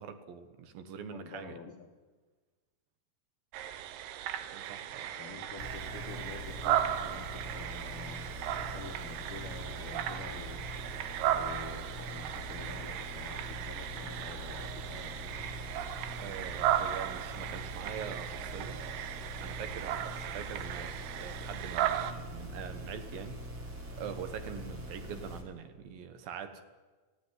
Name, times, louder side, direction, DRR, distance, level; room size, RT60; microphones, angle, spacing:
voice 1, 0.0-1.5 4.4-5.1 16.2-23.4 24.0-26.6, right 7 dB, 70° right, 9 dB, 2.8 m, -44 dB
voice 2, 1.0-1.9 5.2-8.3 8.6-10.6 11.3-15.4, left 4 dB, 65° left, 3 dB, 1.4 m, -48 dB
sound 1, 3.5-22.1, right 11 dB, 85° right, 3.0 m, -36 dB
sound 2, 5.6-25.4, equal, 35° right, 3.1 m, -43 dB
18.0 x 15.0 x 9.7 m, 1.3 s
omnidirectional pair, 4.6 m